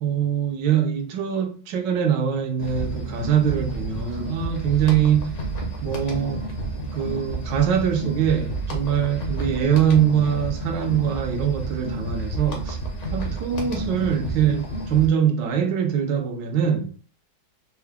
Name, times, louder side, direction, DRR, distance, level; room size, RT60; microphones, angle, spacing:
voice 1, 0.0-5.4 5.8-6.4 6.9-12.8 13.1-16.9, right 8 dB, 70° right, 1.3 m, -23 dB
sound 1, 2.6-15.1, right 2 dB, 50° left, 0.9 m, -30 dB
4.5 x 2.1 x 3.4 m
omnidirectional pair, 2.2 m